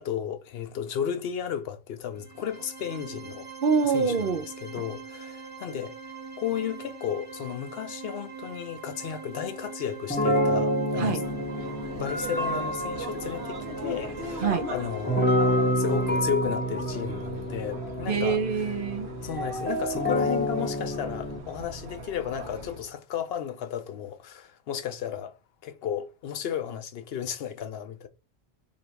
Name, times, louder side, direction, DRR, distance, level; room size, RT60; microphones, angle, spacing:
voice 1, 0.0-3.5 3.8-4.3 4.6-5.9 6.4-11.2 11.9-18.4 19.2-25.3 25.6-28.1, left 9 dB, 70° left, 0.8 m, -34 dB
sound 1, 2.1-16.2, right 5 dB, 30° right, 1.1 m, -43 dB
voice 2, 3.6-4.4 11.0-11.2 14.4-14.6 18.1-19.1, right 5 dB, 60° right, 0.8 m, -25 dB
sound 2, 10.1-21.4, equal, 10° left, 0.7 m, -28 dB
sound 3, 11.1-22.9, right 1 dB, 80° right, 1.2 m, -40 dB
2.8 x 2.7 x 4.3 m
omnidirectional pair, 1.1 m